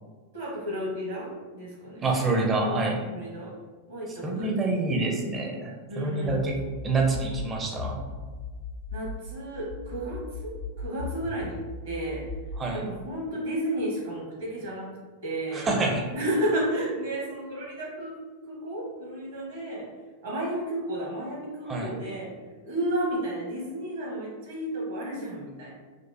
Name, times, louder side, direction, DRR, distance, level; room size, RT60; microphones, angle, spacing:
voice 1, 0.3-1.3 1.5-2.0 2.6-2.8 3.1-3.5 3.9-4.6 5.9-6.3 8.9-10.5 10.8-12.2 12.7-14.9 15.2-15.7 16.1-18.1 18.4-19.9 20.2-22.3 22.6-25.7, right 1 dB, 65° right, -4 dB, 1.4 m, -32 dB
voice 2, 2.0-3.0 4.2-6.6 6.8-8.0 12.6-12.8 15.5-16.1 21.7-21.9, right 3 dB, 20° right, 0 dB, 0.5 m, -27 dB
sound 1, 6.3-9.3 9.7-12.7, left 3 dB, 65° left, 0.5 m, -38 dB
5.0 x 2.0 x 2.7 m, 1.4 s
figure-of-eight pair, 90°, 0 cm